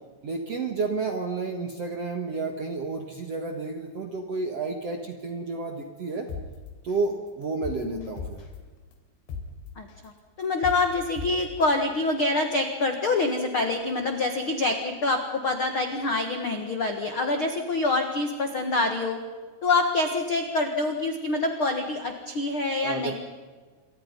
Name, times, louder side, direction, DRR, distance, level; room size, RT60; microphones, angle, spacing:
voice 1, 0.2-6.3 6.8-8.5 22.7-23.1, right 3 dB, 55° right, 4 dB, 1.8 m, -31 dB
sound 1, 6.3-6.4 6.9-7.1 7.4-8.5 8.9-9.0 9.3-9.4 9.9-10.1 10.4-10.8 11.2-11.3, left 6 dB, 80° left, 5.2 m, -35 dB
voice 2, 10.4-19.2 19.6-23.1, left 2 dB, 60° left, 5 dB, 1.3 m, -26 dB
28.0 x 24.0 x 5.4 m, 1.4 s
omnidirectional pair, 5.2 m